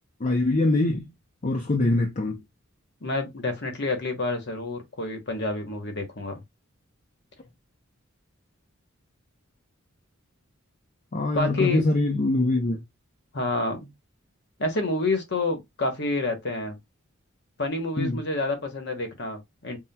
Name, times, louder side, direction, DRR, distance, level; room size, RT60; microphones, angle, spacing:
voice 1, 0.2-1.1 1.4-2.4 11.1-12.8 18.0-18.2, left 2 dB, 35° left, 0.5 m, -23 dB
voice 2, 3.0-6.4 11.3-11.9 13.3-13.9 14.6-16.8 17.6-19.8, left 2 dB, 55° left, 0.9 m, -28 dB
5.5 x 2.1 x 2.2 m
head